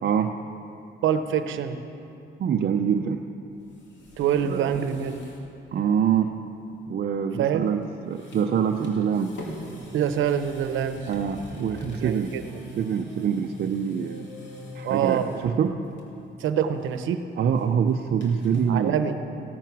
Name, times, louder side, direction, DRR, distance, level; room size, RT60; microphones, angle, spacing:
voice 1, 0.0-0.4 2.4-3.2 4.4-4.7 5.7-6.4 6.9-9.4 11.1-12.4 12.8-14.3 14.7-15.8 17.4-19.0, right 7 dB, 55° right, 3 dB, 0.6 m, -25 dB
voice 2, 1.0-1.8 4.2-5.2 7.4-7.7 9.9-11.0 12.0-12.4 14.8-15.4 16.4-17.2 18.7-19.2, right 9 dB, 80° right, 9 dB, 0.9 m, -25 dB
sound 1, 3.5-5.5 5.8-5.9 7.6-7.8 8.1-15.5 15.9-16.3 16.6-18.7, equal, 65° left, 2.5 m, -42 dB
16.0 x 9.1 x 6.1 m, 2.8 s
cardioid pair, 90°, 20 cm